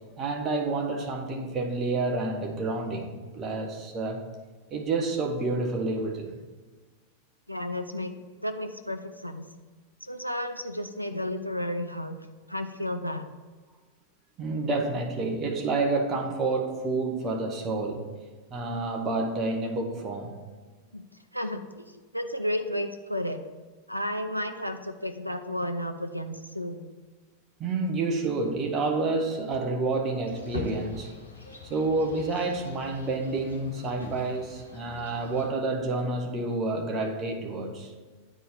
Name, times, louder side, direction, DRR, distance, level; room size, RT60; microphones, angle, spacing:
voice 1, 0.2-4.3 4.7-6.4 14.4-18.0 18.5-20.3 27.6-31.1 31.7-37.9, right 3 dB, 25° right, 1 dB, 1.4 m, -29 dB
voice 2, 7.5-8.1 8.4-9.4 10.0-13.3 20.9-21.0 21.3-21.9 22.1-23.4 23.9-26.9, left 1 dB, 90° right, 7 dB, 0.5 m, -32 dB
sound 1, 30.3-35.5, left 4 dB, 80° left, 1.2 m, -42 dB
9.0 x 4.4 x 5.2 m, 1.4 s
figure-of-eight pair, 90°, 0 cm